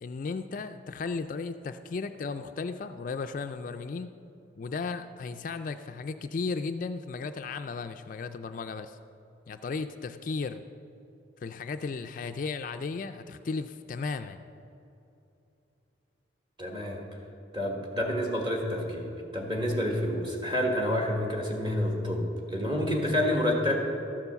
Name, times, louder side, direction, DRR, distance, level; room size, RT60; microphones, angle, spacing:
voice 1, 0.0-4.1 4.6-9.0 9.5-10.6 11.4-14.4, left 4 dB, 45° left, 8 dB, 0.3 m, -35 dB
voice 2, 16.6-17.0 17.5-19.1 19.3-22.3 22.5-23.8, left 1 dB, 25° right, 0 dB, 1.6 m, -28 dB
13.0 x 7.0 x 6.9 m, 2.9 s
head